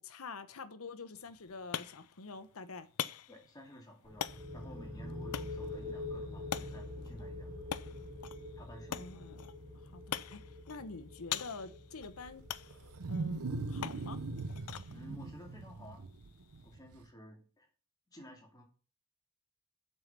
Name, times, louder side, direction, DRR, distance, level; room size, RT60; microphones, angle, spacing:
voice 1, 0.0-2.9 8.9-9.5 9.7-12.4 13.1-13.4 13.7-14.2, left 4 dB, 70° left, 0.9 m, -47 dB
sound 1, 1.1-16.7, left 9 dB, 85° left, 0.5 m, -45 dB
voice 2, 3.3-4.3 4.5-7.6 8.6-9.4 14.9-16.0 16.6-17.7 18.1-18.6, equal, 15° left, 2.3 m, -53 dB
sound 2, 4.0-15.6, left 2 dB, 30° right, 2.3 m, -46 dB
Wild animals, 12.0-17.0, right 3 dB, 75° right, 0.8 m, -40 dB
7.8 x 5.6 x 5.9 m
head